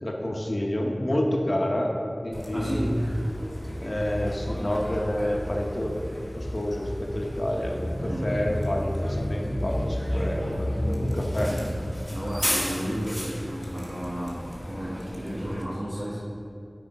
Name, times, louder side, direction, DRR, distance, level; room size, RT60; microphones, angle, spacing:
voice 1, 0.0-1.9 2.2-3.1 3.8-11.5, left 1 dB, 55° left, 0 dB, 1.1 m, -29 dB
Bus, 2.3-15.6, equal, 15° left, 1.7 m, -32 dB
voice 2, 2.5-3.3 8.0-8.4 11.4-11.7 12.1-16.2, equal, 60° right, -11 dB, 1.9 m, -32 dB
8.8 x 5.0 x 5.3 m, 2.7 s
wide cardioid pair, 45°, 0 cm